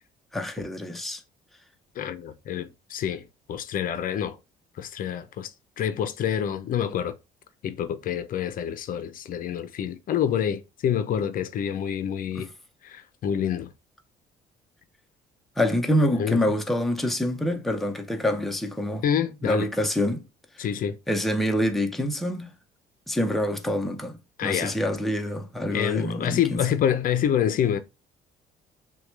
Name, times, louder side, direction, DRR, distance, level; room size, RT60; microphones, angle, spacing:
voice 1, 0.3-1.2 12.3-12.5 15.6-19.0 19.4-20.2 20.6-20.7 21.1-22.5 23.1-26.6, left 1 dB, ahead, 0.6 m, -26 dB
voice 2, 2.0-4.4 4.8-5.5 5.8-7.1 7.6-12.5 12.8-13.7 16.2-16.4 19.0-19.7 20.6-21.0 24.4-24.8 25.7-27.8, left 9 dB, 55° left, 0.5 m, -27 dB
6.2 x 2.3 x 3.2 m
cardioid pair, 110°, 17 cm